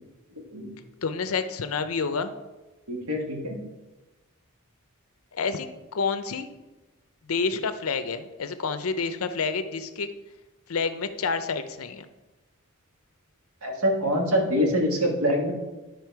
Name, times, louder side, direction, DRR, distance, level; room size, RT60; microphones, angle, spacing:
voice 1, 1.0-2.3 5.3-6.5 7.3-10.1 10.7-12.1, left 5 dB, 70° left, 10 dB, 0.6 m, -29 dB
voice 2, 2.9-3.6 13.6-15.5, equal, 85° right, 1 dB, 1.7 m, -25 dB
10.5 x 5.1 x 4.6 m, 1.1 s
head